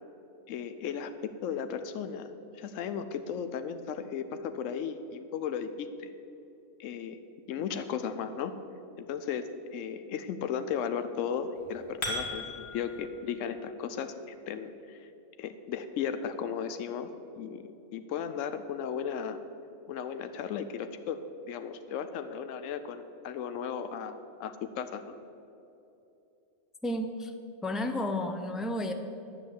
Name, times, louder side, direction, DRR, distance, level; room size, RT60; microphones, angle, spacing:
voice 1, 0.5-6.1 6.8-8.6 9.0-15.1 15.4-17.1 17.4-19.4 19.9-21.2 21.5-25.0, left 7 dB, 80° left, 9 dB, 1.0 m, -35 dB
sound 1, 11.5-13.0, left 1 dB, 55° left, 2.1 m, -36 dB
voice 2, 26.8-27.3 27.6-28.9, left 1 dB, ahead, 6 dB, 0.4 m, -32 dB
10.5 x 7.7 x 8.1 m, 2.8 s
omnidirectional pair, 1.3 m